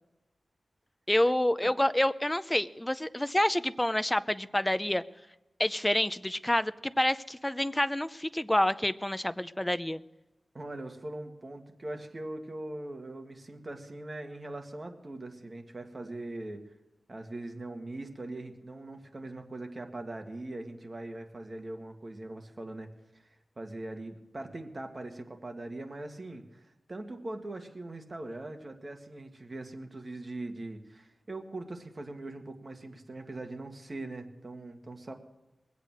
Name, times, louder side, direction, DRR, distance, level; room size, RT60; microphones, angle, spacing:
voice 1, 1.1-5.0 5.6-10.0, left 1 dB, 10° left, 13 dB, 0.5 m, -28 dB
voice 2, 10.5-16.6 17.1-35.1, right 2 dB, 35° right, 4 dB, 1.8 m, -41 dB
22.0 x 8.3 x 6.3 m, 1.0 s
wide cardioid pair, 95°, 0 cm